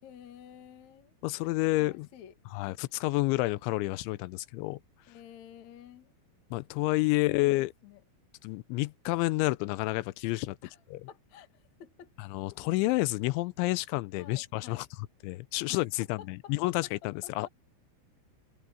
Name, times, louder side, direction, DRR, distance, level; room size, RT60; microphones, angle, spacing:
voice 1, 0.0-1.1 1.6-2.3 5.1-6.1 7.1-8.0 10.6-12.1 14.2-14.9 15.7-16.5 16.8-16.9 17.2-17.5, left 10 dB, 50° left, 2.4 m, -51 dB
voice 2, 1.2-2.1 2.5-4.8 6.5-7.7 8.4-10.6 10.9-11.0 12.2-14.9 15.2-17.5, left 20 dB, 85° left, 3.0 m, -29 dB
omnidirectional pair, 5.3 m